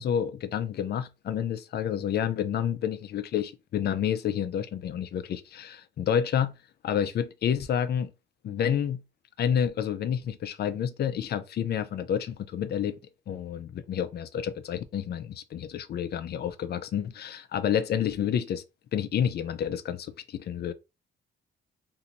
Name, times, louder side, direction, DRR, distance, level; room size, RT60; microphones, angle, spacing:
voice 1, 0.0-6.5 6.8-8.1 8.4-9.0 9.4-13.0 13.3-18.6 18.9-20.7, left 9 dB, 55° left, 0.4 m, -29 dB
2.9 x 2.6 x 2.5 m
cardioid pair, 90°, 20 cm